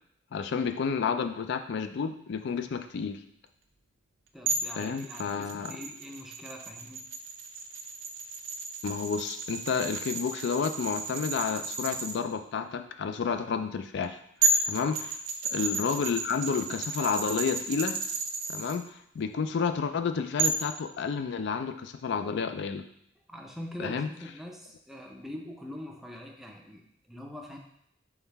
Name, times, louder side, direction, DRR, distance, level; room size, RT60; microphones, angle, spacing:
voice 1, 0.3-3.2 4.8-5.8 8.8-14.2 14.6-15.0 15.4-18.0 18.5-18.8 19.1-22.8 23.8-24.1, left 6 dB, 60° left, 8 dB, 0.4 m, -30 dB
voice 2, 4.3-7.0 14.8-15.0 23.3-27.6, left 1 dB, ahead, 1 dB, 0.5 m, -43 dB
sound 1, 4.5-12.2 14.0-14.1 14.4-18.8 20.4-20.7, right 3 dB, 80° right, 0.6 m, -32 dB
3.9 x 3.3 x 4.1 m, 0.73 s
head